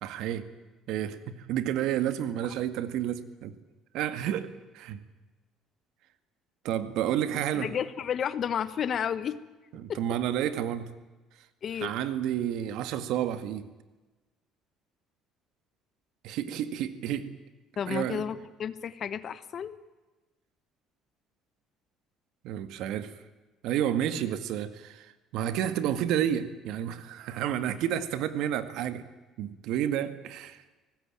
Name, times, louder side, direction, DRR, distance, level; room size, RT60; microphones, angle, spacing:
voice 1, 0.0-0.5 0.9-3.6 3.9-5.0 6.6-7.7 9.8-10.9 11.8-13.7 16.2-17.3 17.9-18.2 22.4-23.1 23.6-29.0 29.4-30.6, right 10 dB, 70° right, 12 dB, 1.9 m, -30 dB
voice 2, 7.5-9.4 9.9-10.0 11.6-11.9 17.8-19.8, left 8 dB, 35° left, 15 dB, 1.2 m, -32 dB
25.0 x 19.5 x 8.9 m, 1.2 s
cardioid pair, 155°, 0 cm